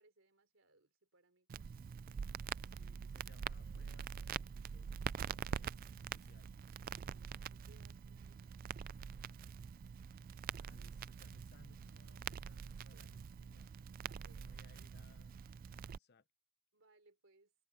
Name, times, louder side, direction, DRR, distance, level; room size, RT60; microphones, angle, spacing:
voice 1, 0.0-1.6 7.0-8.5 12.9-13.1 13.9-14.5 16.7-17.5, right 2 dB, 70° right, 4.0 m, -70 dB
Crackle, 1.5-16.0, right 7 dB, 45° right, 0.3 m, -45 dB
voice 2, 2.6-6.5 10.4-13.7 14.3-15.4 15.7-16.3, left 3 dB, 55° left, 0.8 m, -67 dB
open air
head